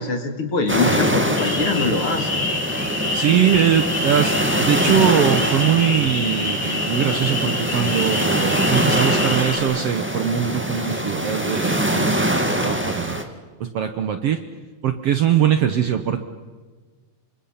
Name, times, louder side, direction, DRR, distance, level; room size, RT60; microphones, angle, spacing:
voice 1, 0.0-2.4, left 3 dB, 45° left, 5 dB, 3.0 m, -23 dB
sound 1, 0.7-13.2, right 1 dB, 5° right, 1.1 m, -23 dB
sound 2, 1.3-9.6, left 3 dB, 85° left, 6.9 m, -27 dB
voice 2, 3.1-13.3 13.6-14.4 14.8-16.2, right 9 dB, 65° right, 8 dB, 1.7 m, -21 dB
28.5 x 25.0 x 5.8 m, 1.4 s
omnidirectional pair, 3.6 m